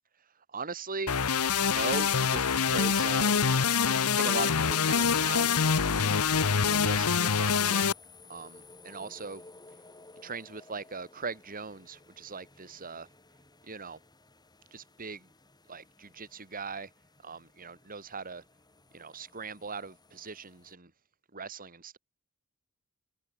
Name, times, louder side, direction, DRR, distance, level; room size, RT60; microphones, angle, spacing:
voice 1, 0.5-1.2 1.7-3.5 4.2-5.5 5.8-6.2 6.6-7.9 8.3-9.4 10.2-13.1 13.7-14.0 14.7-15.3 15.7-16.9 17.2-18.4 18.9-20.9 21.3-22.0, right 4 dB, 40° right, 2.6 m, -39 dB
sound 1, 1.1-7.9, left 6 dB, 80° left, 1.1 m, -25 dB
sound 2, 6.4-20.7, left 2 dB, 20° left, 7.6 m, -56 dB
head